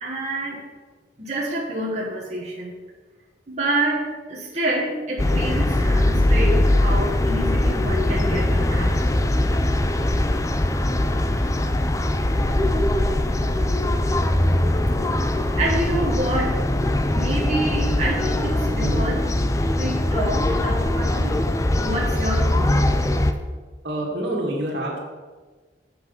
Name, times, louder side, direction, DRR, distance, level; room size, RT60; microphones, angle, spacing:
voice 1, 0.0-0.6 1.2-2.7 3.5-9.0 15.6-16.6 17.1-19.2 19.7-21.4 21.8-22.9, right 1 dB, 35° right, -5 dB, 1.6 m, -27 dB
sound 1, 5.2-23.3, left 1 dB, 15° left, 0.5 m, -21 dB
voice 2, 18.8-19.1 23.8-25.0, right 1 dB, 70° right, -2 dB, 2.3 m, -27 dB
8.1 x 6.0 x 6.6 m, 1.4 s
head